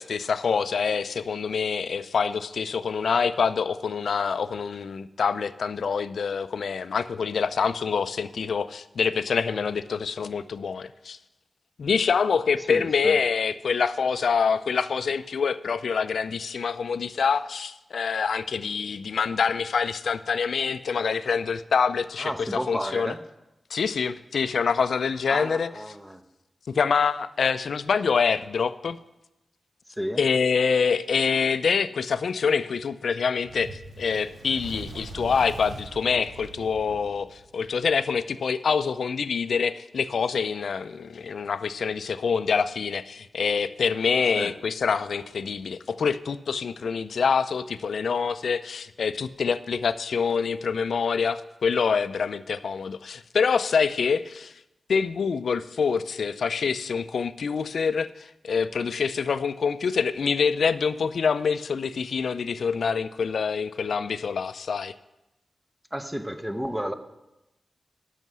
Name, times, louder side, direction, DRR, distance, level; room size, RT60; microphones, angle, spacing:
voice 1, 0.0-11.2 11.8-23.1 23.7-25.7 26.7-29.0 30.2-54.5 54.9-64.9, left 6 dB, 85° left, 14 dB, 0.4 m, -26 dB
voice 2, 12.7-13.2 22.2-23.2 25.3-26.2 29.9-30.2 44.3-44.5 65.9-66.9, equal, 10° right, 9 dB, 0.6 m, -32 dB
Fire, 33.4-38.0, right 3 dB, 80° right, 0.8 m, -42 dB
11.0 x 5.7 x 6.2 m, 0.96 s
wide cardioid pair, 125°, 0 cm